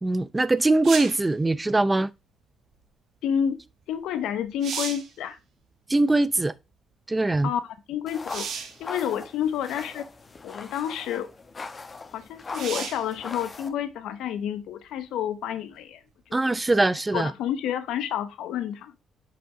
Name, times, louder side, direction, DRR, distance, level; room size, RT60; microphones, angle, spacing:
voice 1, 0.0-2.1 5.9-6.5 7.1-7.5 16.3-17.3, right 2 dB, 15° right, 0.5 m, -22 dB
sound 1, 0.8-1.3 3.9-4.0 4.4-5.2 8.3-8.8 9.8-9.9 12.5-13.1 16.7-16.8, right 7 dB, 70° right, 1.3 m, -33 dB
voice 2, 3.2-3.6 3.9-5.4 7.4-7.6 7.9-10.0 10.4-11.3 12.1-16.0 16.4-16.6 17.1-18.9, left 9 dB, 85° left, 0.7 m, -29 dB
sound 2, 8.1-13.7, left 4 dB, 35° left, 1.1 m, -40 dB
5.6 x 5.2 x 4.7 m
cardioid pair, 90°, 0 cm